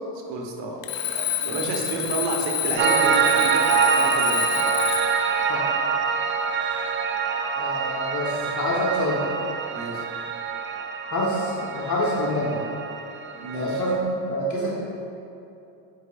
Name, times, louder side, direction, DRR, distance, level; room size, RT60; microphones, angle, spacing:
voice 1, 0.3-4.6 9.7-10.1 13.4-13.8, right 3 dB, 65° right, 1 dB, 1.3 m, -30 dB
Alarm, 0.8-5.3, left 11 dB, 75° left, 0.9 m, -29 dB
Piano, 2.8-14.0, right 6 dB, 25° right, 0.4 m, -25 dB
voice 2, 7.5-9.3 11.1-12.6 13.5-14.8, equal, 35° left, -4 dB, 1.2 m, -26 dB
9.6 x 5.1 x 2.4 m, 2.7 s
supercardioid pair, 85°, 49 cm